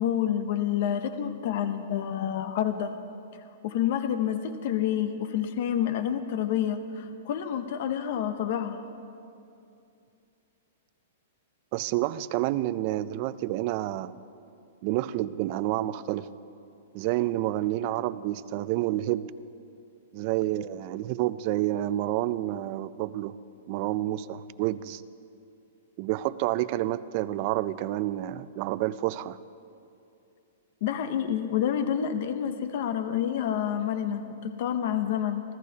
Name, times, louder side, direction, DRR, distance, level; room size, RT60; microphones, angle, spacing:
voice 1, 0.0-2.9 3.6-8.8 30.8-35.4, left 9 dB, 40° left, 9 dB, 0.6 m, -28 dB
voice 2, 11.7-14.2 14.8-16.3 16.9-19.3 20.1-23.3 23.7-25.0 26.0-29.4, right 15 dB, 30° right, 15 dB, 0.3 m, -29 dB
29.0 x 13.5 x 2.8 m, 2.6 s
hypercardioid pair, 175°, 0 cm